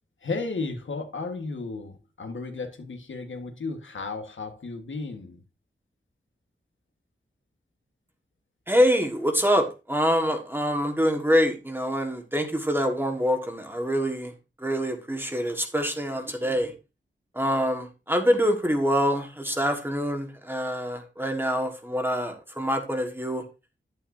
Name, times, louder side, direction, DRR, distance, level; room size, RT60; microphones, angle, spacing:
voice 1, 0.2-5.4, left 3 dB, 85° left, 1.5 m, -34 dB
voice 2, 8.7-14.3 14.6-16.7 17.3-23.4, equal, 10° right, 1.6 m, -25 dB
9.6 x 8.9 x 2.7 m
wide cardioid pair, 105°, 20 cm